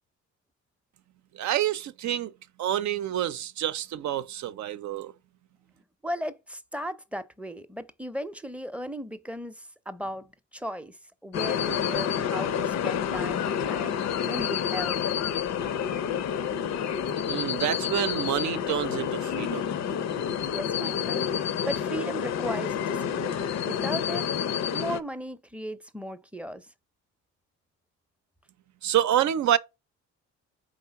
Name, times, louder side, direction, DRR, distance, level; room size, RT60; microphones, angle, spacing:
voice 1, 1.3-2.3 2.6-5.1 17.3-19.7 28.8-29.6, right 11 dB, 70° right, 0.6 m, -27 dB
voice 2, 6.0-11.0 11.2-15.0 20.5-21.3 21.7-24.3 24.7-26.7, equal, 5° right, 0.6 m, -36 dB
sound 1, 11.3-25.0, left 8 dB, 60° left, 0.6 m, -29 dB
4.9 x 3.8 x 5.7 m
cardioid pair, 90°, 30 cm